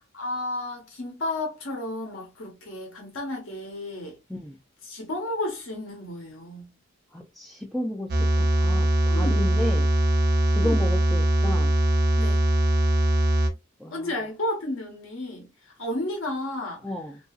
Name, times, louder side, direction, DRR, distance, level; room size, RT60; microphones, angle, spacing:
voice 1, 0.1-4.2 4.8-6.7 9.1-9.4 10.6-10.8 12.2-12.4 13.9-16.8, left 1 dB, 70° left, 1.0 m, -32 dB
voice 2, 7.1-8.1 8.6-9.9 10.5-11.7 13.8-14.1 16.8-17.2, left 1 dB, ahead, 0.3 m, -32 dB
sound 1, 8.1-13.5, right 1 dB, 55° right, 0.7 m, -21 dB
2.7 x 2.6 x 2.3 m
head